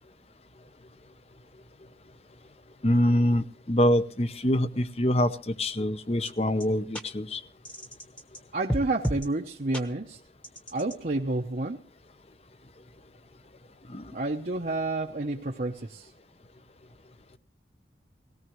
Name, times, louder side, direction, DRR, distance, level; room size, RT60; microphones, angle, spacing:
voice 1, 2.8-7.4 13.9-14.1, left 1 dB, 35° left, 13 dB, 0.8 m, -25 dB
sound 1, 6.3-6.4 6.6-6.7 6.9-7.0 7.6-8.4 8.7-9.3 9.7-9.8 10.4-11.0, equal, 5° left, 1.1 m, -32 dB
voice 2, 8.5-10.2 10.7-11.8 14.1-16.1, right 2 dB, 50° right, 0 dB, 0.8 m, -30 dB
18.5 x 17.5 x 3.1 m, 0.39 s
head